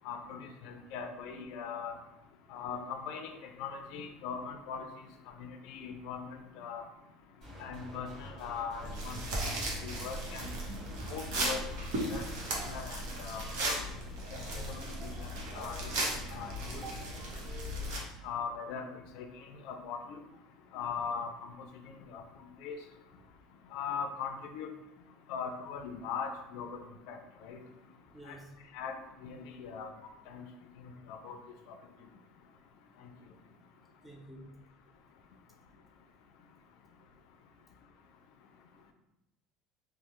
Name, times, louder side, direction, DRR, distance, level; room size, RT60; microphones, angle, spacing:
voice 1, 0.0-2.0 2.5-4.8 5.4-6.8 7.6-9.5 9.8-10.5 11.1-11.6 11.9-12.2 12.7-13.8 14.5-14.9 15.2-15.9 16.3-16.8 18.2-18.9 19.2-19.3 19.6-20.2 20.7-21.5 22.1-22.2 22.6-22.8 23.7-24.7 25.3-26.8 27.1-27.6 28.7-28.9 29.2-29.9 30.3-30.4 30.8-31.4, left 6 dB, 70° left, 6 dB, 0.4 m, -40 dB
sound 1, 7.4-12.6, right 1 dB, 45° right, 1.4 m, -48 dB
sound 2, 8.8-18.0, right 1 dB, 80° right, 0.7 m, -36 dB
voice 2, 28.1-28.8 29.7-29.8 34.0-34.6, right 2 dB, 5° right, -2 dB, 0.4 m, -49 dB
3.1 x 2.0 x 3.1 m, 0.94 s
supercardioid pair, 115°, 0 cm